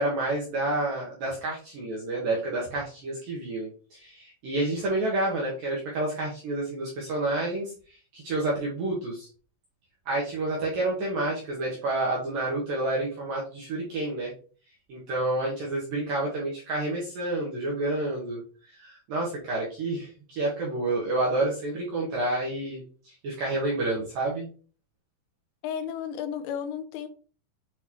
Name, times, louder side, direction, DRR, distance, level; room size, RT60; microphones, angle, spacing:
voice 1, 0.0-9.3 10.1-14.3 14.9-18.4 18.7-24.5, right 2 dB, 70° right, -4 dB, 2.1 m, -29 dB
voice 2, 25.6-27.1, left 8 dB, 85° left, 9 dB, 3.3 m, -33 dB
8.1 x 3.9 x 3.0 m, 0.40 s
omnidirectional pair, 5.6 m